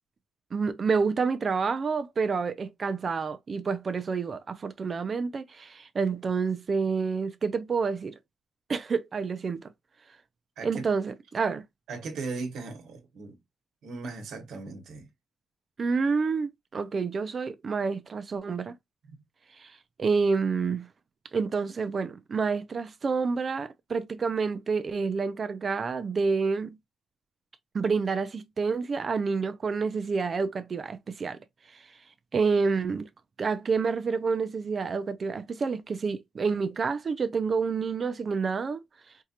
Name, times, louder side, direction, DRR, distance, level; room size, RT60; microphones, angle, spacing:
voice 1, 0.5-8.2 8.7-9.7 10.6-11.6 15.8-18.8 19.6-20.9 21.3-26.8 27.7-31.4 31.7-31.8 32.3-33.1 33.4-38.8, right 5 dB, 30° right, 0.5 m, -28 dB
voice 2, 11.9-13.4 13.8-15.1, right 3 dB, 65° right, 1.2 m, -37 dB
4.5 x 2.4 x 2.8 m
cardioid pair, 175°, 0 cm